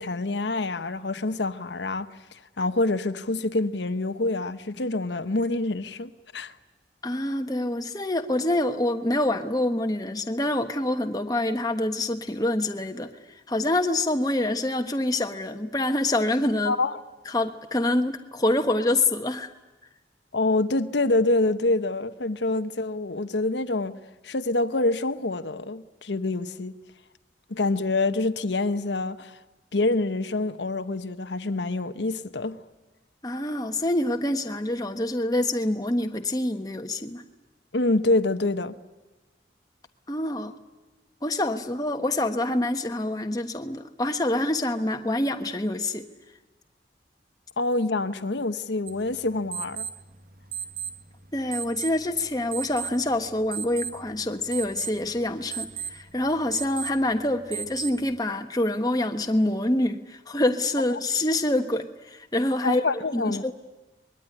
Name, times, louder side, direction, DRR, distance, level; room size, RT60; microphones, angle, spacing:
voice 1, 0.0-6.5 16.6-17.0 20.3-23.9 24.2-26.7 27.5-29.4 29.7-32.6 37.7-38.8 47.6-49.9 62.6-63.5, left 2 dB, 80° left, 1.1 m, -26 dB
voice 2, 7.0-13.1 13.5-16.8 17.3-19.5 33.2-37.2 40.1-40.5 41.2-46.0 51.3-62.8 63.1-63.5, left 1 dB, 20° left, 1.3 m, -26 dB
sound 1, 48.9-58.2, right 8 dB, 50° right, 1.0 m, -38 dB
25.0 x 21.5 x 10.0 m
head